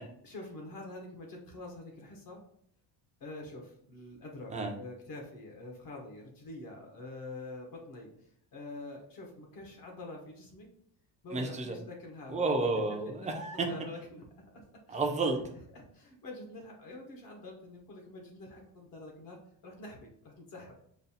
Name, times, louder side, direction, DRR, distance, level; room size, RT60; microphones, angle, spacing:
voice 1, 0.2-2.4 3.2-10.7 11.2-12.4 12.8-15.0 15.7-20.7, left 2 dB, 55° left, 1 dB, 0.9 m, -46 dB
voice 2, 11.3-11.7 12.3-13.7 14.9-15.4, right 3 dB, 20° right, 3 dB, 0.4 m, -31 dB
5.2 x 2.3 x 2.7 m, 0.66 s
cardioid pair, 165°, 42 cm